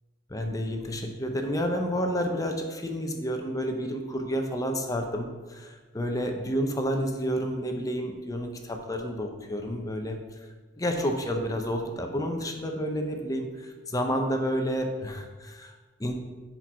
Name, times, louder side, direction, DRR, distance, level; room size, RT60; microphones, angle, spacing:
voice 1, 0.3-16.1, equal, 20° left, 4 dB, 0.7 m, -30 dB
6.4 x 4.6 x 5.7 m, 1.3 s
head